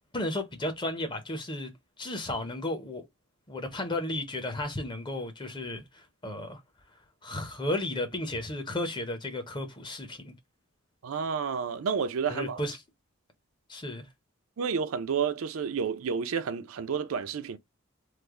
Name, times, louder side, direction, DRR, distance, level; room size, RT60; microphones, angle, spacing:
voice 1, 0.1-1.7 2.0-3.0 3.5-6.6 7.2-10.3 12.3-12.8 13.7-14.1, left 1 dB, 20° left, 0.6 m, -34 dB
voice 2, 11.0-12.6 14.6-17.6, right 6 dB, 70° right, 0.4 m, -30 dB
3.2 x 2.0 x 3.5 m
head